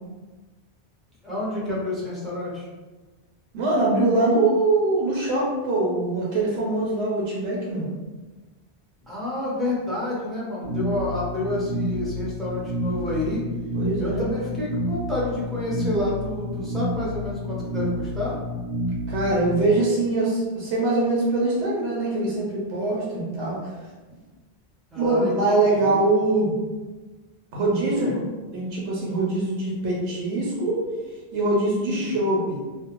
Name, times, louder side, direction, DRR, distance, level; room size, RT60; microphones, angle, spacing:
voice 1, 1.2-2.7 9.1-13.4 14.0-18.4 24.9-26.0 27.9-28.1 31.9-32.2, left 2 dB, ahead, -7 dB, 0.5 m, -29 dB
voice 2, 3.5-7.9 13.7-14.3 19.1-23.7 25.0-26.5 27.5-28.2 28.5-30.8 31.3-32.6, right 2 dB, 80° right, -5 dB, 0.9 m, -23 dB
sound 1, 10.6-19.6, equal, 55° right, 0.8 m, -29 dB
2.5 x 2.0 x 2.9 m, 1.3 s
omnidirectional pair, 1.1 m